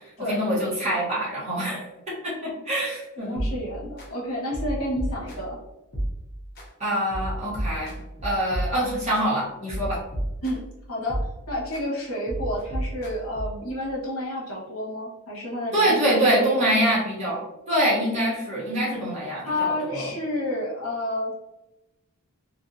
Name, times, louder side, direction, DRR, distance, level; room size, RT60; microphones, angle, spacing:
voice 1, 0.3-1.8 2.2-3.4 6.8-8.0 8.2-10.0 15.7-17.4 17.7-20.1, right 1 dB, 30° right, -7 dB, 1.2 m, -25 dB
voice 2, 3.2-5.6 10.4-10.6 10.9-11.2 11.5-16.6 19.4-21.3, left 1 dB, 80° left, -4 dB, 1.0 m, -30 dB
sound 1, 3.4-4.1 4.5-5.6 5.9-6.7 7.1-9.3 9.7-10.7 11.1-11.8 12.3-13.7, right 1 dB, 45° left, 0.7 m, -32 dB
2.7 x 2.6 x 2.4 m, 0.98 s
head